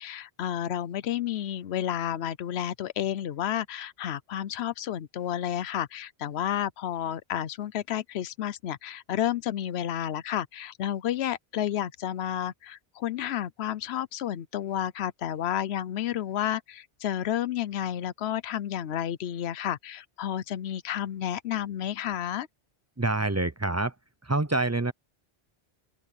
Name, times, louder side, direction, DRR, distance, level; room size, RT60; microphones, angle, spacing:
voice 1, 0.0-22.5, left 11 dB, 85° left, 0.9 m, -31 dB
voice 2, 23.0-23.9 24.2-24.9, right 2 dB, 20° right, 0.6 m, -26 dB
open air
omnidirectional pair, 1.1 m